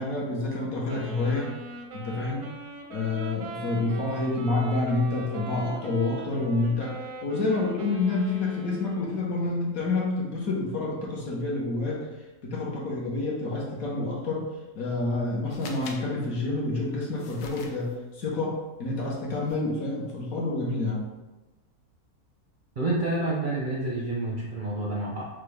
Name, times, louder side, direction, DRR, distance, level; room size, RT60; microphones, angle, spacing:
voice 1, 0.0-1.5 1.9-2.5 2.9-12.1 12.4-14.5 14.7-21.0, left 2 dB, 70° left, -3 dB, 1.4 m, -28 dB
Wind instrument woodwind instrument, 0.9-9.4, right 2 dB, 85° right, 1.2 m, -41 dB
sound 1, 15.5-16.0 17.2-18.0 19.5-19.6 20.0-20.2, left 4 dB, 85° left, 1.2 m, -44 dB
voice 2, 22.8-25.3, right 2 dB, 55° right, -4 dB, 0.5 m, -28 dB
5.8 x 2.3 x 3.3 m, 1.1 s
omnidirectional pair, 1.6 m